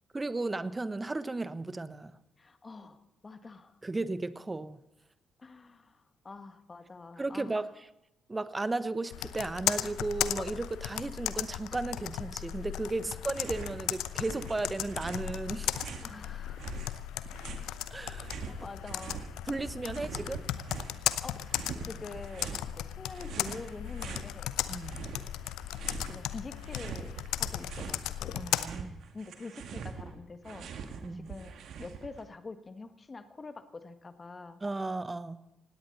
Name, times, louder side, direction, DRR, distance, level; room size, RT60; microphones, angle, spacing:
voice 1, 0.1-2.2 3.8-4.8 7.2-7.6 8.3-15.7 17.9-18.3 19.5-20.4 24.7-25.0 28.3-29.0 31.0-31.3 34.6-35.4, right 2 dB, 20° right, 15 dB, 1.0 m, -35 dB
voice 2, 2.4-3.7 5.4-7.6 13.0-13.1 16.0-16.7 18.5-19.2 21.2-24.5 26.0-28.5 29.1-31.5 31.8-34.6, left 3 dB, 30° left, 10 dB, 1.5 m, -46 dB
Computer keyboard, 9.1-28.6, left 13 dB, 65° left, 0.7 m, -36 dB
sound 1, 13.3-13.8 14.1-16.2 16.6-19.3 19.6-21.0 21.5-22.7 23.1-24.3 24.7-26.2 26.5-28.0 28.3-32.2, right 6 dB, 60° right, 1.9 m, -43 dB
19.0 x 17.0 x 4.1 m, 0.89 s
figure-of-eight pair, 45°, 0 cm